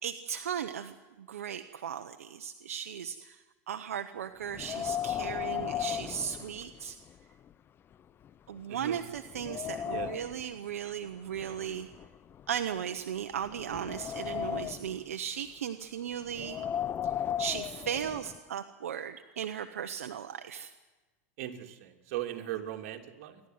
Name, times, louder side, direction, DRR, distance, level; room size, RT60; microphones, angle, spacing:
voice 1, 0.0-7.0 8.5-11.9 12.5-16.6 17.0-17.1 17.4-20.7, right 8 dB, 90° right, 8 dB, 0.9 m, -37 dB
Wind, 4.5-7.1 7.5-7.6 8.3-8.4 8.8-10.5 11.3-12.8 13.4-15.0 16.3-18.4, left 9 dB, 30° left, 0.6 m, -36 dB
voice 2, 8.7-9.0 9.9-10.1 21.4-23.4, right 12 dB, 65° right, 2 dB, 2.9 m, -38 dB
28.0 x 12.0 x 9.5 m, 1.2 s
hypercardioid pair, 110°, 8 cm